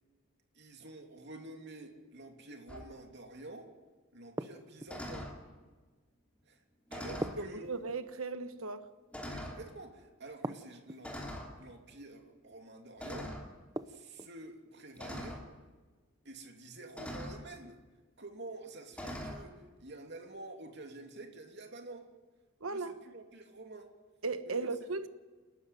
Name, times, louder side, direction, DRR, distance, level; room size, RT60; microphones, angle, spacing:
voice 1, 0.5-3.7 4.1-5.3 6.5-6.6 6.9-7.7 9.3-11.2 11.6-13.4 13.9-15.5 16.2-17.8 18.2-22.1 22.7-23.9 24.5-24.7, right 2 dB, 50° right, 3.1 m, -49 dB
sound 1, 2.7-2.9 4.9-5.4 6.9-7.4 8.3-8.4 9.1-9.6 11.0-11.5 13.0-13.5 15.0-15.4 17.0-17.4 18.9-19.4, equal, 5° left, 3.1 m, -42 dB
sound 2, 4.4-5.2 7.2-8.3 10.4-11.2 13.8-14.4, right 1 dB, 15° right, 0.7 m, -41 dB
voice 2, 7.4-8.8 22.6-22.9 24.2-25.1, right 3 dB, 75° right, 1.3 m, -36 dB
29.5 x 12.5 x 9.3 m
head